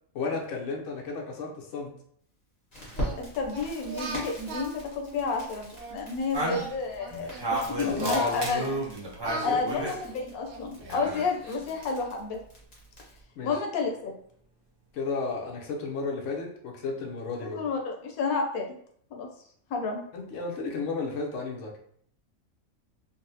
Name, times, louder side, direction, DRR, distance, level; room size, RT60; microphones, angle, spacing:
voice 1, 0.1-2.0 7.8-8.4 9.2-9.8 13.4-13.6 14.9-17.6 20.1-21.8, left 4 dB, 65° left, 0 dB, 1.0 m, -33 dB
Crackle, 2.7-13.2, equal, 30° left, 1.1 m, -43 dB
Singing, 2.9-5.9 6.4-8.9 9.2-11.8, right 3 dB, 55° right, 0.8 m, -41 dB
voice 2, 3.2-8.8 9.4-12.4 13.4-14.1 17.4-18.8 19.1-19.3 19.7-20.0, left 4 dB, 85° left, 2 dB, 1.1 m, -31 dB
sound 1, 6.3-10.0 10.8-11.5, equal, 35° right, 0.4 m, -31 dB
3.9 x 2.1 x 2.6 m, 0.62 s
omnidirectional pair, 1.5 m